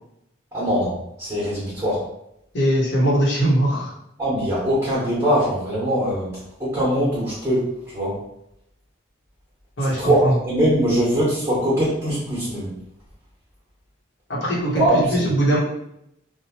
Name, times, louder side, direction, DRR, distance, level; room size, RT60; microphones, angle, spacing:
voice 1, 0.5-0.9 1.2-2.0 4.2-6.3 6.6-7.6 7.9-8.1 9.8-12.7 14.7-15.3, equal, 15° right, -8 dB, 0.9 m, -21 dB
voice 2, 2.5-3.9 9.8-10.3 14.3-14.8 15.1-15.6, right 1 dB, 65° left, -4 dB, 0.9 m, -20 dB
2.8 x 2.1 x 2.9 m, 0.78 s
head